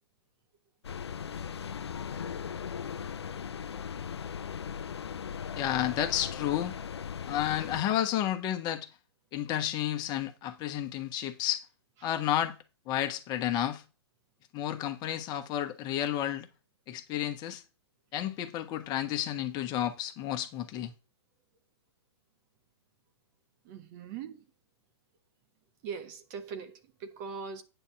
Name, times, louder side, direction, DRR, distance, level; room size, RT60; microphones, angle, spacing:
sound 1, 0.8-7.8, left 7 dB, 75° left, 0.6 m, -38 dB
voice 1, 5.5-6.7 7.3-8.9 9.3-11.6 12.0-12.6 12.9-13.8 14.5-16.5 16.9-17.6 18.1-20.9, left 11 dB, 30° left, 1.4 m, -31 dB
voice 2, 23.6-24.4 25.8-27.6, right 6 dB, 40° right, 1.4 m, -41 dB
9.1 x 4.1 x 7.2 m
figure-of-eight pair, 115°, 14 cm